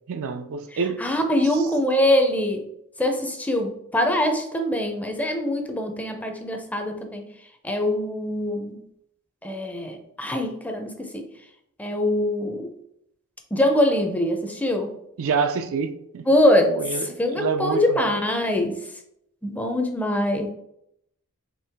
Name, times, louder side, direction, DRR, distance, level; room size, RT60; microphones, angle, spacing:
voice 1, 0.1-1.0 1.5-1.7 15.2-16.3 16.7-18.1, right 5 dB, 60° right, 0.4 m, -27 dB
voice 2, 1.0-2.6 3.0-7.2 7.6-8.8 9.4-11.3 11.8-12.7 13.5-14.9 16.3-18.8 19.4-20.5, left 1 dB, 5° left, 0.5 m, -23 dB
4.6 x 3.2 x 3.4 m
head